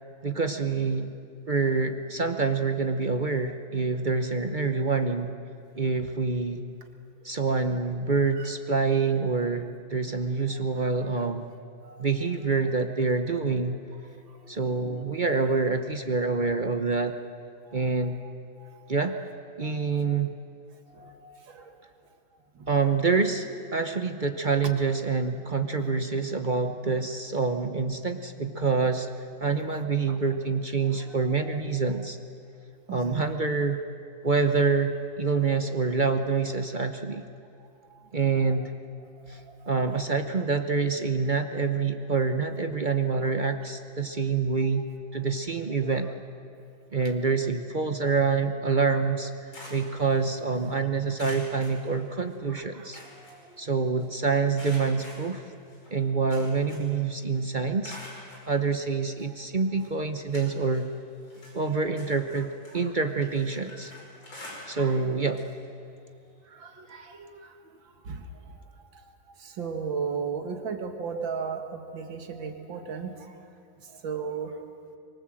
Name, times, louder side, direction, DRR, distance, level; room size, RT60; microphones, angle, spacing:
voice 1, 0.2-1.1 1.5-5.3 5.8-6.6 7.2-11.5 12.0-13.8 14.5-17.2 17.7-18.2 18.9-19.3 19.6-20.3 22.7-29.1 29.4-32.2 32.9-33.8 34.2-37.2 38.1-38.7 39.3-39.4 39.7-44.9 45.1-46.1 46.9-53.0 53.6-55.4 55.9-58.0 58.5-60.9 61.5-63.9 64.7-65.5, right 4 dB, 45° right, 7 dB, 0.6 m, -26 dB
voice 2, 11.8-12.3 21.0-21.1 21.5-21.6 31.3-31.6 32.9-33.3 39.7-40.0 45.8-46.1 52.5-52.9 64.8-65.0 66.6-67.3 68.1-68.2 69.6-73.1 74.0-74.5, right 6 dB, 75° right, 5 dB, 2.5 m, -35 dB
sound 1, 49.1-50.7 51.2-52.5 52.7-54.1 54.5-57.0 57.3-58.5 59.2-59.3 59.8-60.9 61.2-65.0 65.3-65.5 65.9-66.0 67.2-67.3, left 1 dB, 80° left, 6.1 m, -47 dB
24.5 x 23.0 x 7.6 m, 2.4 s
omnidirectional pair, 2.1 m